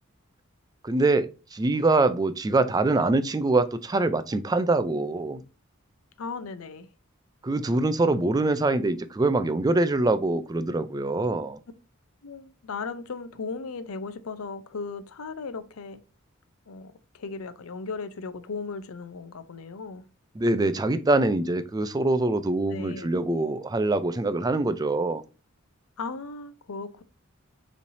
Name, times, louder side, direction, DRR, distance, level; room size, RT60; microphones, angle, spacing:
voice 1, 0.8-5.4 7.4-11.6 20.4-25.2, right 2 dB, 20° right, 0.3 m, -24 dB
voice 2, 6.2-6.9 12.2-16.0 16.7-20.1 22.7-23.1 26.0-27.0, left 4 dB, 85° left, 0.6 m, -36 dB
5.4 x 3.3 x 2.6 m
head